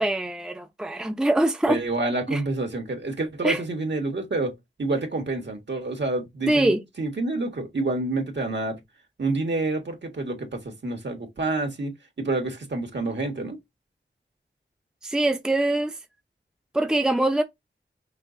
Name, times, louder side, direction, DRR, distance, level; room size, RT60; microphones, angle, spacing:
voice 1, 0.0-1.8 2.3-2.4 3.4-3.6 6.5-6.8 15.0-15.9 16.7-17.4, right 1 dB, 5° right, 0.6 m, -23 dB
voice 2, 1.7-4.5 4.8-8.8 9.2-13.6, right 2 dB, 65° right, 1.6 m, -28 dB
5.8 x 2.3 x 3.9 m
wide cardioid pair, 70°, 20 cm